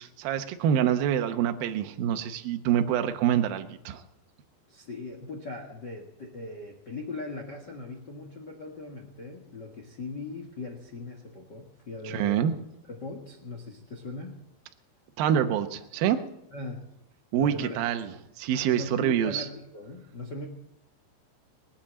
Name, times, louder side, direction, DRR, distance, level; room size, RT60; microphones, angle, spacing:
voice 1, 0.0-4.0 12.0-12.5 15.2-16.3 17.3-19.5, right 9 dB, 70° right, 7 dB, 2.5 m, -26 dB
voice 2, 4.7-12.5 12.9-14.4 16.5-16.9 17.4-17.9 18.7-20.5, left 3 dB, 85° left, 1 dB, 0.9 m, -39 dB
22.5 x 8.6 x 7.5 m, 0.85 s
omnidirectional pair, 4.9 m